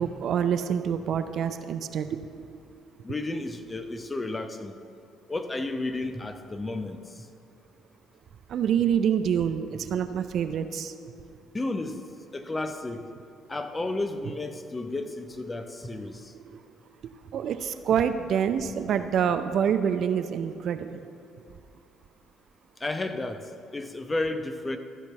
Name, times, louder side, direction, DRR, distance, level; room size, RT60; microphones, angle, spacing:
voice 1, 0.0-2.2 8.5-11.0 17.3-21.0, right 8 dB, 55° right, 10 dB, 0.4 m, -26 dB
voice 2, 3.0-4.7 5.3-7.3 11.5-12.0 12.3-13.1 13.5-16.3 22.8-24.8, left 2 dB, 25° left, 7 dB, 0.8 m, -32 dB
13.0 x 4.5 x 6.8 m, 2.4 s
figure-of-eight pair, 50°, 0 cm